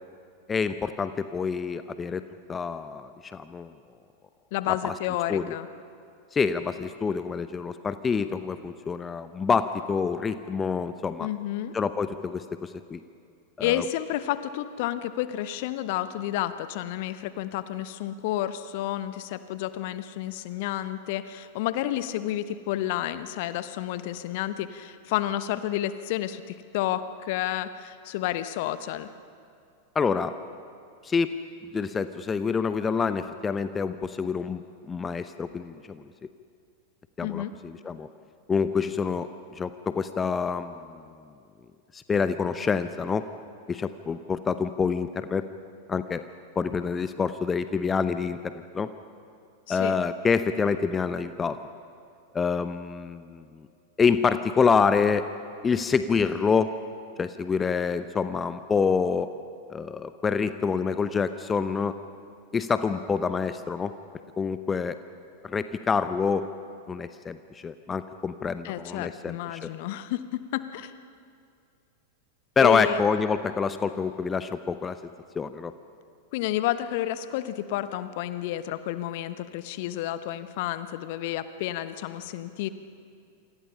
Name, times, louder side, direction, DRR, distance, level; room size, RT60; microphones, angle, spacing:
voice 1, 0.5-2.2 2.5-3.7 4.7-4.9 5.3-5.5 6.3-11.3 11.7-13.0 13.6-13.8 29.9-30.3 31.0-31.3 31.7-36.0 37.2-38.1 38.5-41.0 41.9-43.3 43.7-45.5 45.9-46.2 46.6-48.9 49.7-51.6 52.3-53.7 54.0-55.3 55.6-56.7 57.2-59.3 59.7-62.0 62.5-63.9 64.4-65.0 65.4-66.5 66.9-69.7 72.6-75.0 75.3-75.7, left 5 dB, 20° left, 11 dB, 0.8 m, -27 dB
voice 2, 4.5-5.7 11.2-11.7 13.6-29.1 37.2-37.5 49.7-50.0 68.6-70.9 72.6-73.0 76.3-82.7, left 13 dB, 50° left, 13 dB, 1.1 m, -30 dB
28.0 x 26.0 x 5.7 m, 2.3 s
figure-of-eight pair, 90°, 0 cm